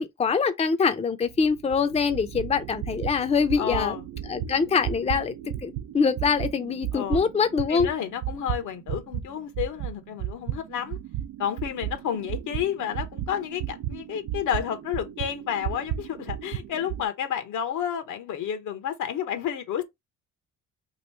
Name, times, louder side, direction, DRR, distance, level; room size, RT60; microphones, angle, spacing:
voice 1, 0.0-4.0 4.3-7.9, left 5 dB, 20° left, 0.5 m, -24 dB
sound 1, 1.2-9.3 9.6-17.0, right 11 dB, 80° right, 0.6 m, -34 dB
voice 2, 3.6-4.0 6.9-7.3 7.7-11.0 11.4-19.8, left 9 dB, 80° left, 1.0 m, -31 dB
3.0 x 2.6 x 4.4 m
cardioid pair, 90°, 30 cm